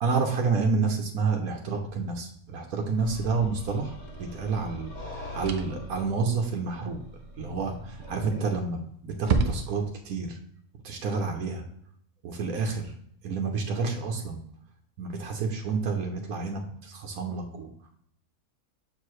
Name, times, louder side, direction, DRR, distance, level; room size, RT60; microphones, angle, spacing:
voice 1, 0.0-7.0 7.4-10.4 10.8-11.6 12.2-12.9 13.2-14.4 15.0-17.7, right 4 dB, 90° right, 2 dB, 1.3 m, -29 dB
sound 1, 2.9-8.5, left 1 dB, 50° left, 2.1 m, -42 dB
sound 2, 4.1-4.2 5.4-5.9 8.0-8.4 8.7-8.8 9.2-10.0, right 4 dB, 55° right, 0.5 m, -28 dB
6.9 x 4.7 x 3.1 m, 0.67 s
omnidirectional pair, 1.5 m